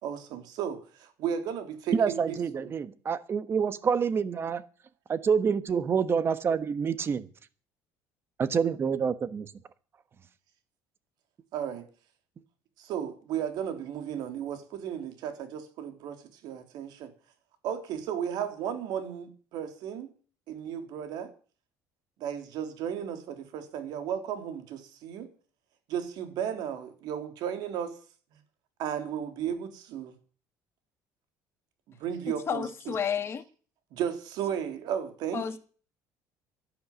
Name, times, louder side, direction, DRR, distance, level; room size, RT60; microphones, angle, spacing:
voice 1, 0.0-2.7 11.5-11.9 12.8-17.1 17.6-20.1 20.5-21.3 22.2-25.3 25.9-28.0 28.8-30.1 31.9-33.0 33.9-35.6, right 8 dB, 70° right, 3.4 m, -34 dB
voice 2, 1.9-4.7 5.1-7.3 8.4-9.5, right 6 dB, 35° right, 1.3 m, -27 dB
voice 3, 32.5-33.4 35.3-35.6, left 7 dB, 35° left, 1.8 m, -31 dB
11.5 x 11.5 x 9.0 m
cardioid pair, 120°, 7 cm